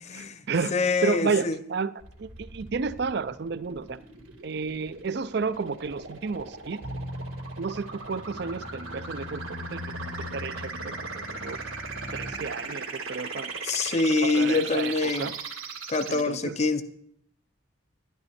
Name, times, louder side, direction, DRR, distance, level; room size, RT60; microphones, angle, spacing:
voice 1, 0.1-0.8 1.0-1.9 2.2-4.0 4.4-6.8 7.6-10.8 11.1-11.6 12.1-13.5 14.2-15.3 16.1-16.6, right 4 dB, 55° right, 15 dB, 0.4 m, -31 dB
voice 2, 0.7-1.6 13.7-15.3 15.9-16.8, left 3 dB, 35° left, 12 dB, 0.6 m, -25 dB
sound 1, 2.0-16.2, right 4 dB, 85° right, 2.2 m, -39 dB
sound 2, 6.8-12.3, left 1 dB, 90° left, 3.1 m, -40 dB
11.5 x 11.0 x 4.3 m, 0.69 s
head